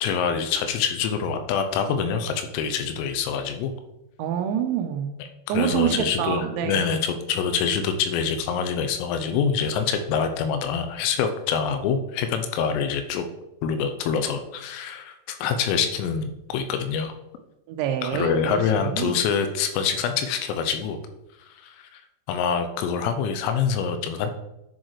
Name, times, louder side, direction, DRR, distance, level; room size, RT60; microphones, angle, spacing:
voice 1, 0.0-3.7 5.5-13.3 13.6-17.1 18.0-21.0 21.6-22.0 22.3-24.3, left 6 dB, 85° left, 7 dB, 3.3 m, -25 dB
voice 2, 4.2-5.2 5.5-7.0 17.7-19.2, right 10 dB, 90° right, 5 dB, 2.6 m, -27 dB
10.5 x 6.4 x 3.1 m, 0.93 s
omnidirectional pair, 6.0 m